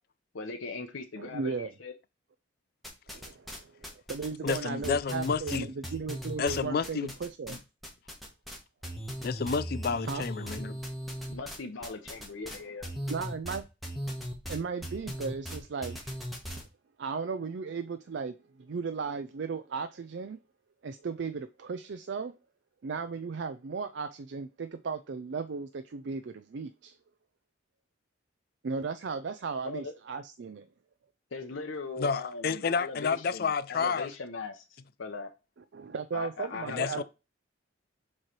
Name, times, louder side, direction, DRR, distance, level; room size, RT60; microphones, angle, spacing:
voice 1, 0.3-1.9 11.3-12.9 29.6-29.9 31.3-35.3 36.1-37.0, left 4 dB, 80° left, 0.7 m, -40 dB
voice 2, 1.2-1.7 3.1-7.6 10.1-10.3 13.1-13.6 14.5-16.2 17.0-20.4 20.8-22.3 22.8-27.0 28.6-30.7 35.7-37.0, right 5 dB, 60° right, 0.4 m, -36 dB
sound 1, 2.8-3.6 3.8-7.6 7.8-8.6 8.8-16.6, equal, ahead, 1.1 m, -38 dB
voice 3, 4.4-5.7 6.4-7.1 7.5-7.6 9.2-10.8 32.0-34.1 36.7-37.0, left 5 dB, 50° left, 0.4 m, -30 dB
7.5 x 3.2 x 4.4 m
head